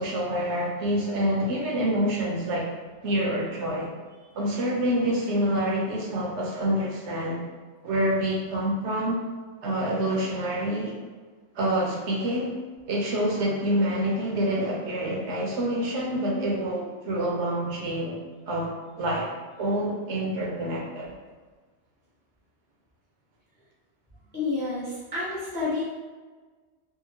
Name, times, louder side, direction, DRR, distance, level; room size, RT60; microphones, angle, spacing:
voice 1, 0.0-2.7 3.0-3.9 4.3-7.4 7.8-9.2 9.6-11.0 11.6-12.6 12.9-18.2 18.5-18.7 19.0-19.3 19.6-21.1, right 1 dB, 70° right, -2 dB, 0.9 m, -27 dB
voice 2, 24.3-25.8, left 3 dB, 15° left, -7 dB, 0.4 m, -29 dB
2.8 x 2.5 x 2.7 m, 1.4 s
omnidirectional pair, 1.3 m